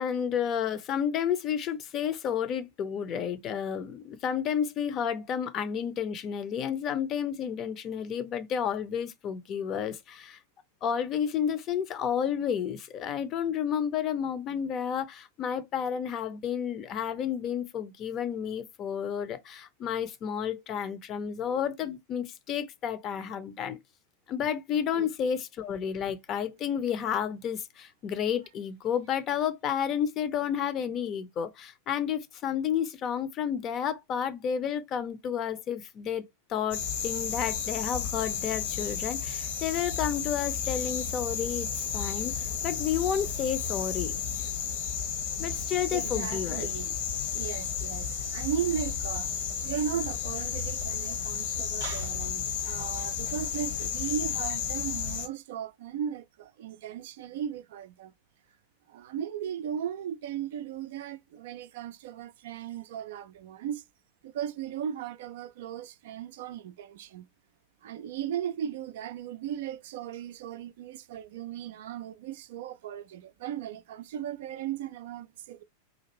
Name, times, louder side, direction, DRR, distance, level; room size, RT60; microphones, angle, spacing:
voice 1, 0.0-10.4 10.8-23.8 24.3-36.2 36.5-42.4 42.6-44.1 45.4-46.7, left 8 dB, 30° left, 0.6 m, -31 dB
sound 1, 36.7-55.3, left 7 dB, 55° left, 0.9 m, -32 dB
voice 2, 45.9-47.0 47.3-49.3 49.6-58.1 58.9-63.8 64.2-67.2 67.8-75.6, right 9 dB, 55° right, 0.3 m, -36 dB
4.0 x 2.5 x 2.9 m
figure-of-eight pair, 90°, 0 cm